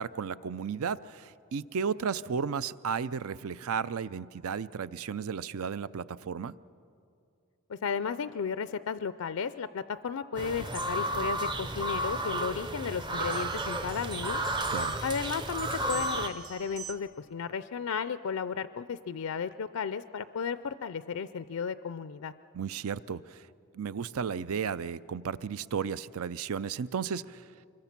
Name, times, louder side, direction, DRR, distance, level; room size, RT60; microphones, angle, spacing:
voice 1, 0.0-6.5 14.7-15.0 22.5-23.4 23.7-27.5, right 6 dB, 75° right, 17 dB, 0.5 m, -34 dB
voice 2, 7.7-14.4 15.0-22.3, left 6 dB, 75° left, 13 dB, 0.4 m, -34 dB
sound 1, 10.4-16.3, right 1 dB, 20° right, 0.6 m, -32 dB
sound 2, 13.3-17.2, right 7 dB, 50° right, 1.2 m, -45 dB
25.0 x 21.5 x 5.9 m, 2.5 s
head